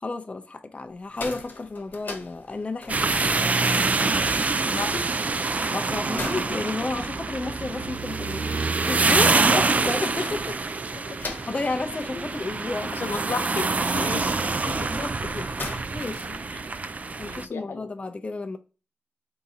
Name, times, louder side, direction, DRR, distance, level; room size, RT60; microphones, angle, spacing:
voice 1, 0.0-3.4 5.7-8.6 8.8-10.6 11.2-12.9 14.0-14.3 14.7-15.5 15.9-16.4 17.2-18.6, left 3 dB, 35° left, 0.5 m, -32 dB
sound 1, 0.9-16.9, left 3 dB, 65° left, 1.0 m, -43 dB
sound 2, 2.9-17.5, right 3 dB, 45° right, 0.3 m, -26 dB
voice 2, 4.7-5.0 12.9-13.7 13.9-14.3 14.6-14.9 16.5-16.6 17.3-17.9, left 4 dB, 85° left, 0.7 m, -32 dB
3.8 x 2.7 x 4.0 m
wide cardioid pair, 70°, 4 cm